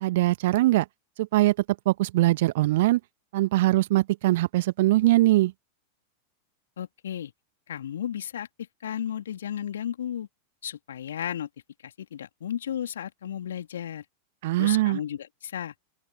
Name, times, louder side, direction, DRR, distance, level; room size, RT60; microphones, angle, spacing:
voice 1, 0.0-0.8 1.2-1.5 1.8-3.0 3.3-5.5 14.4-15.0, right 17 dB, 55° right, 1.5 m, -22 dB
voice 2, 6.8-7.3 7.7-8.5 8.8-10.3 10.6-11.5 11.8-14.0 14.6-15.7, left 10 dB, 65° left, 3.1 m, -34 dB
open air
figure-of-eight pair, 90°, 0 cm